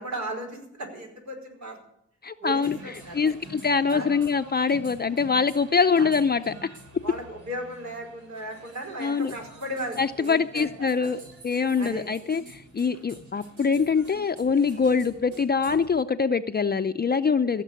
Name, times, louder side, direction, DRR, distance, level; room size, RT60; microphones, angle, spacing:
voice 1, 0.0-1.8 2.4-3.4 3.9-4.1 6.0-6.1 7.0-11.1 11.8-12.0, right 1 dB, 70° right, 0 dB, 4.9 m, -36 dB
voice 2, 2.2-6.5 9.0-9.3 10.0-17.6, left 5 dB, 35° left, 9 dB, 0.6 m, -24 dB
sound 1, 2.4-15.9, right 2 dB, 85° right, 3.6 m, -47 dB
16.0 x 6.7 x 9.4 m, 0.74 s
cardioid pair, 65°, 29 cm